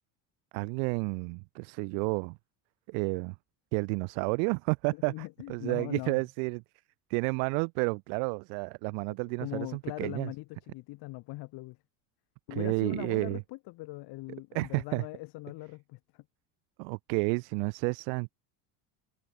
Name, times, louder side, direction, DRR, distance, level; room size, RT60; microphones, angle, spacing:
voice 1, 0.5-2.4 2.9-3.3 3.7-6.6 7.1-10.3 12.5-13.4 14.5-15.0 16.8-18.3, right 40 dB or more, 75° right, 0.9 m, -31 dB
voice 2, 4.9-6.2 9.1-11.8 12.5-16.2, left 21 dB, 60° left, 1.4 m, -41 dB
supercardioid pair, 105°, 46 cm